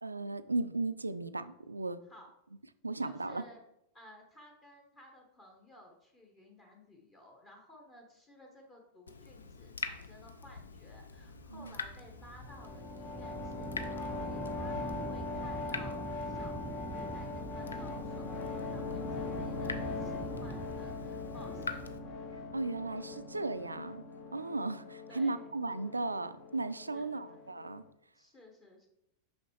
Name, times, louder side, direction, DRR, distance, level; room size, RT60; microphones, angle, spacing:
voice 1, 0.0-2.0 2.8-3.4 11.5-11.7 22.5-24.0 24.3-27.8, right 3 dB, 80° right, 13 dB, 0.3 m, -36 dB
voice 2, 3.0-3.6 3.9-21.8 25.1-25.5 26.9-27.4 28.1-28.9, left 1 dB, 20° left, 0 dB, 1.1 m, -56 dB
Water tap faucet / Drip, 9.1-22.0, left 4 dB, 70° left, 0.5 m, -46 dB
sound 1, 11.1-23.2, right 2 dB, 10° right, 0.4 m, -45 dB
sound 2, 12.4-27.9, left 3 dB, 40° left, 0.8 m, -41 dB
6.3 x 5.5 x 3.1 m, 0.83 s
figure-of-eight pair, 90°, 0 cm